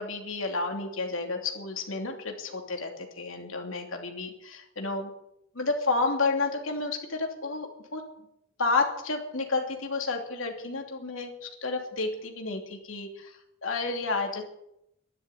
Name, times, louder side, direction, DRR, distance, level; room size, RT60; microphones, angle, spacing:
voice 1, 0.0-5.1 5.5-8.0 8.6-13.3 13.6-14.4, left 3 dB, 75° left, 2 dB, 2.9 m, -31 dB
11.5 x 11.0 x 8.7 m, 0.80 s
head